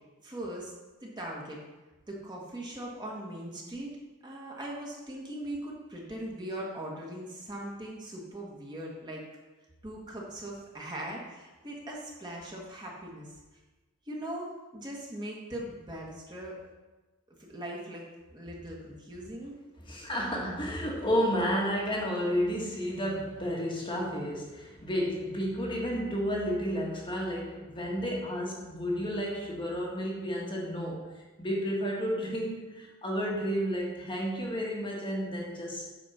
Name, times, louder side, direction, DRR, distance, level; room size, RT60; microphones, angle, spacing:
voice 1, 0.2-0.7 1.0-1.6 2.1-3.9 4.2-9.2 9.8-13.3 14.0-16.6 17.5-18.0 18.3-19.5, right 1 dB, 20° right, -3 dB, 1.5 m, -40 dB
voice 2, 19.8-31.1 31.4-35.9, equal, 25° left, -2 dB, 1.4 m, -31 dB
8.7 x 4.3 x 5.6 m, 1.2 s
head